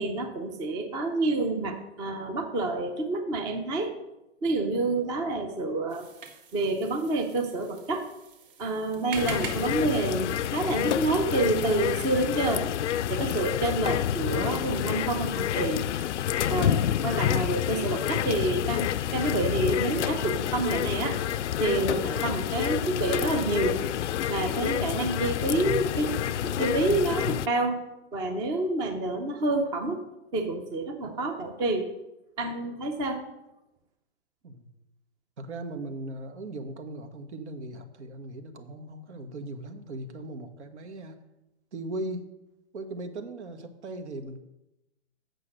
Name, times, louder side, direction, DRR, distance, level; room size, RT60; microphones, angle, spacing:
voice 1, 0.0-3.9 4.4-6.1 6.5-8.0 8.6-12.7 13.1-15.8 16.5-21.2 21.6-23.8 24.3-26.2 26.4-27.8 28.1-30.0 30.3-31.9 32.4-33.2, right 2 dB, 10° right, 5 dB, 0.5 m, -28 dB
sound 1, 5.9-11.0, right 5 dB, 50° right, 1.9 m, -44 dB
sound 2, 9.1-27.5, left 10 dB, 85° left, 0.5 m, -28 dB
voice 2, 35.4-41.2 41.7-42.3 42.7-44.4, right 2 dB, 75° right, 7 dB, 1.5 m, -38 dB
8.4 x 6.7 x 6.6 m, 0.94 s
hypercardioid pair, 150°, 35 cm